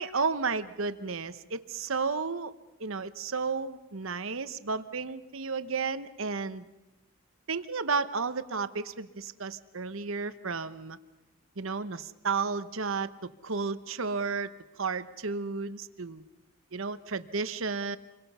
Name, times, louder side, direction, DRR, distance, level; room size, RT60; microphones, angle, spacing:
voice 1, 0.0-2.5 2.8-6.6 7.5-11.0 11.6-14.5 14.8-16.2 16.7-18.0, right 4 dB, 75° right, 12 dB, 1.0 m, -32 dB
28.0 x 23.0 x 5.6 m, 1.0 s
head